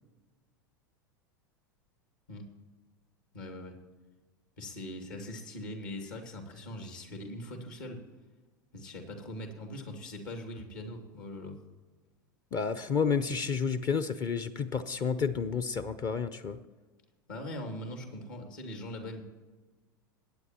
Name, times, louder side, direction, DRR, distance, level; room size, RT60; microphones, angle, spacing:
voice 1, 3.3-3.8 4.6-8.0 8.7-11.6 17.3-19.2, left 1 dB, 65° left, 5 dB, 2.4 m, -41 dB
voice 2, 12.5-16.6, left 6 dB, 35° left, 13 dB, 0.7 m, -30 dB
22.0 x 9.6 x 2.9 m, 1.3 s
figure-of-eight pair, 85°, 11 cm